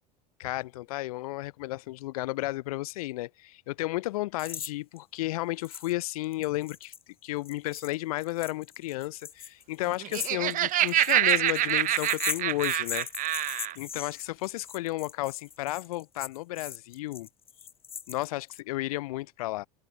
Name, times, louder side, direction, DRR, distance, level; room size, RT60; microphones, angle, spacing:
voice 1, 0.4-6.9 7.2-17.3 18.1-19.7, left 18 dB, 60° left, 6.1 m, -33 dB
sound 1, 4.4-4.7 5.0-5.1 5.6-5.9 6.2-18.6, left 7 dB, 25° left, 7.2 m, -40 dB
Laughter, 9.9-13.8, right 14 dB, 40° right, 3.9 m, -26 dB
figure-of-eight pair, 80°, 21 cm